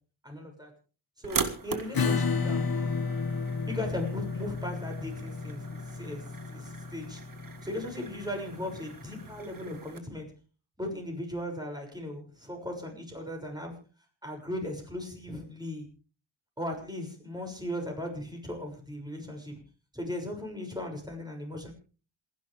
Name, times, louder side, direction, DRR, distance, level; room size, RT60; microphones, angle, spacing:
voice 1, 0.2-0.7 1.2-2.7 3.7-6.2 6.5-7.2 7.6-10.3 10.8-13.7 14.2-15.9 16.6-19.6 19.9-21.7, left 1 dB, 10° right, 2 dB, 6.6 m, -37 dB
sound 1, 1.2-10.0, right 5 dB, 45° right, 1.9 m, -40 dB
Acoustic guitar / Strum, 1.9-9.2, left 4 dB, 50° left, 1.9 m, -32 dB
27.5 x 11.5 x 3.5 m, 0.37 s
wide cardioid pair, 95°, 47 cm